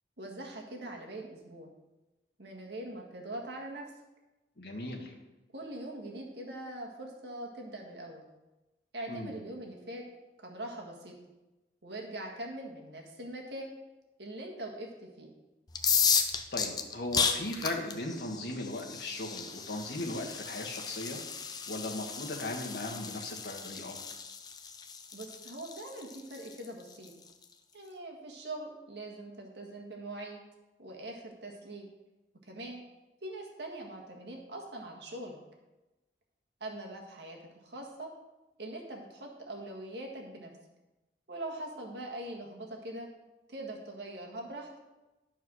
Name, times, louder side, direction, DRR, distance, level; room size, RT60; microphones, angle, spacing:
voice 1, 0.2-1.7 2.4-3.9 5.5-8.2 8.9-10.0 10.4-11.1 11.8-13.7 14.2-15.3 25.1-27.1 27.7-30.4 30.8-31.9 32.4-32.8 33.2-35.4 36.6-38.1 38.6-40.5 41.3-43.1 43.5-44.8, right 1 dB, 75° right, 0 dB, 1.7 m, -42 dB
voice 2, 4.6-5.1 9.1-9.3 16.0-21.2 21.7-24.0, left 1 dB, 65° left, 1 dB, 1.6 m, -38 dB
sound 1, 15.7-27.4, left 6 dB, 20° left, 0.5 m, -34 dB
11.0 x 4.6 x 6.2 m, 1.1 s
head